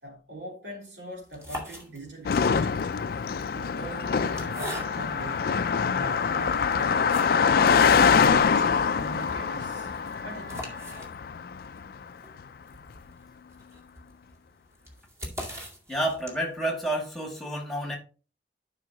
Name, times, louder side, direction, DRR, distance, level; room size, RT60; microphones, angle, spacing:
voice 1, 0.0-3.0 3.5-7.1 7.7-9.9 10.2-10.8, right 1 dB, 90° right, 3.4 m, -42 dB
sound 1, 1.2-2.4 3.2-5.3 5.9-6.0 6.5-7.6 7.9-8.0 8.3-8.4 8.8-16.6, equal, 15° right, 2.1 m, -42 dB
Car passing by, 2.3-11.8, left 6 dB, 55° left, 0.4 m, -24 dB
Wind instrument woodwind instrument, 3.5-11.1, left 1 dB, 50° right, 3.8 m, -44 dB
voice 2, 15.9-18.0, right 1 dB, ahead, 2.3 m, -29 dB
11.5 x 5.5 x 2.9 m
head